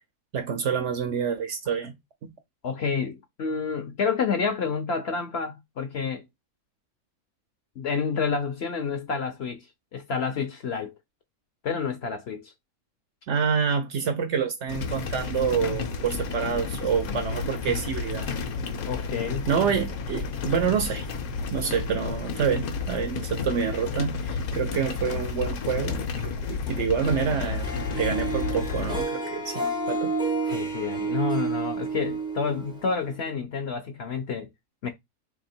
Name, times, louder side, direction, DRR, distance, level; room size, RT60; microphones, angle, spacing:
voice 1, 0.3-2.0 2.2-2.3 13.3-18.3 19.5-21.1 21.5-27.7 28.0-30.1, right 7 dB, 60° right, 0.8 m, -27 dB
voice 2, 2.6-6.3 7.8-9.7 9.9-10.9 11.6-12.5 18.9-19.5 30.5-34.5 34.8-34.9, left 5 dB, 55° left, 0.8 m, -29 dB
sound 1, 14.7-29.0, left 5 dB, 75° left, 1.2 m, -31 dB
Harp, 27.0-33.3, right 3 dB, 5° right, 0.5 m, -30 dB
2.8 x 2.8 x 4.3 m
omnidirectional pair, 1.5 m